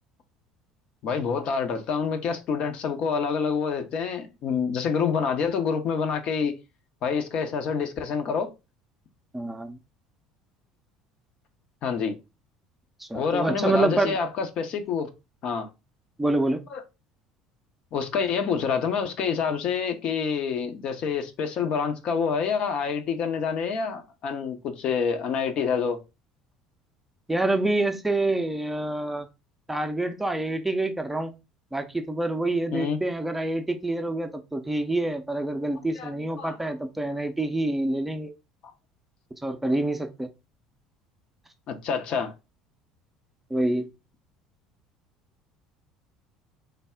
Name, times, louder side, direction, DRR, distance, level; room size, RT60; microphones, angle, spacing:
voice 1, 1.0-6.6 7.0-8.5 11.8-12.2 13.1-15.1 15.4-15.7 16.7-16.8 17.9-26.0 32.7-33.0 36.0-36.1 36.4-36.6 41.7-42.3, left 6 dB, 45° left, 0.6 m, -27 dB
voice 2, 9.3-9.8 13.0-14.2 16.2-16.6 27.3-29.3 29.7-31.3 31.7-38.3 39.4-40.3 43.5-43.9, right 2 dB, 10° right, 0.5 m, -27 dB
3.3 x 2.0 x 3.6 m
figure-of-eight pair, 60°, 2 cm